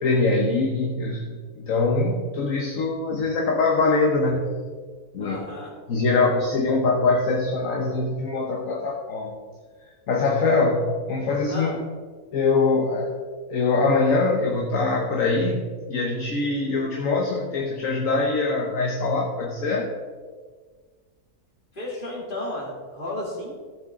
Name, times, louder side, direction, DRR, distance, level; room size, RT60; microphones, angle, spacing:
voice 1, 0.0-4.6 5.1-5.4 5.9-9.3 10.1-11.7 12.3-13.1 13.5-19.9, left 3 dB, 60° left, 0 dB, 1.4 m, -23 dB
voice 2, 5.2-5.7 11.5-11.8 21.7-23.6, left 1 dB, 30° left, -4 dB, 3.0 m, -33 dB
15.5 x 7.3 x 3.8 m, 1.5 s
omnidirectional pair, 1.7 m